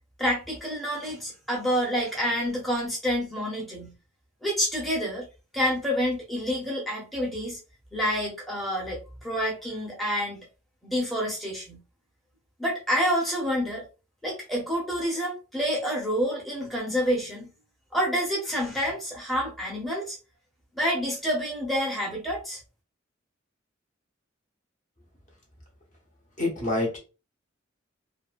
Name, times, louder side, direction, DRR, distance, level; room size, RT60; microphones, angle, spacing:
voice 1, 0.2-3.9 4.4-5.3 5.5-7.6 7.9-10.4 10.8-11.8 12.6-13.8 14.2-17.5 17.9-20.2 20.7-22.6, equal, ahead, 0.8 m, -28 dB
voice 2, 26.4-27.0, left 2 dB, 40° left, 1.0 m, -26 dB
2.7 x 2.4 x 2.5 m
head